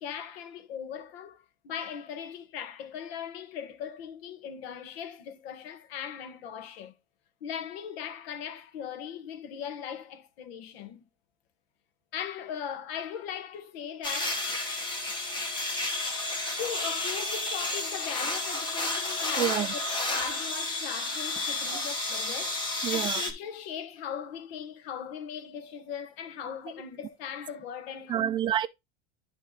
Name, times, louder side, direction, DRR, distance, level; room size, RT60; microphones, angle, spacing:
voice 1, 0.0-6.9 7.4-11.0 12.1-14.5 16.0-16.2 16.6-19.6 20.1-22.6 22.9-28.3, left 8 dB, 80° left, 1.5 m, -39 dB
sound 1, 14.0-23.3, left 2 dB, 15° left, 1.4 m, -31 dB
voice 2, 19.3-19.7 21.7-21.8 22.8-23.2 28.1-28.7, right 10 dB, 15° right, 0.4 m, -28 dB
10.5 x 3.6 x 3.8 m
supercardioid pair, 160°, 30 cm